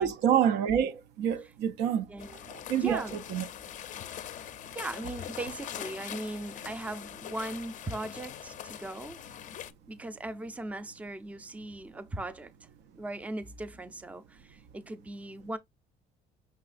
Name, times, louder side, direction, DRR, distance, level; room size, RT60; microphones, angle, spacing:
voice 1, 0.0-2.1 2.7-3.0 3.3-3.5, right 9 dB, 80° right, 0.5 m, -27 dB
voice 2, 2.1-2.4 2.8-3.2 4.7-9.2 9.9-12.5 13.0-15.6, right 2 dB, 10° right, 0.4 m, -39 dB
sound 1, 2.2-9.7, left 10 dB, 50° left, 0.5 m, -43 dB
5.7 x 3.1 x 2.4 m
cardioid pair, 110°, 17 cm